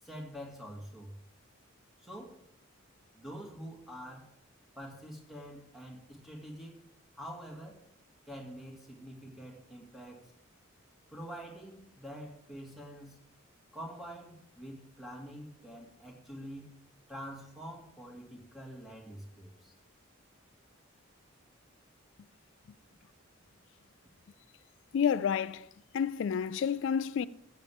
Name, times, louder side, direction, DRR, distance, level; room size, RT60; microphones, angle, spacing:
voice 1, 0.0-1.2 2.0-2.4 3.1-4.3 4.8-6.8 7.1-7.8 8.3-10.3 11.1-13.2 13.7-16.7 17.1-19.8, equal, ahead, 2.1 m, -46 dB
voice 2, 24.9-25.7 25.9-27.3, left 7 dB, 60° left, 0.3 m, -29 dB
15.0 x 8.4 x 3.5 m
head